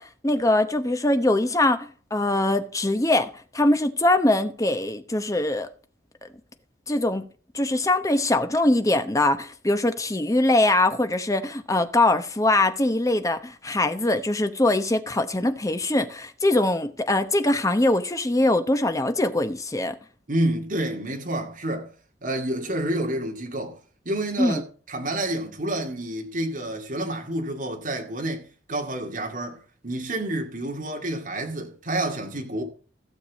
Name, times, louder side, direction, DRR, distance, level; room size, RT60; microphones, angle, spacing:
voice 1, 0.0-5.7 6.9-7.3 7.5-20.0 24.4-24.6, left 2 dB, 20° left, 0.9 m, -22 dB
voice 2, 20.3-21.9 22.2-23.8 24.0-24.6 24.9-28.4 28.7-29.6 29.8-32.6, right 1 dB, 45° right, 2.3 m, -28 dB
15.5 x 6.9 x 4.1 m
head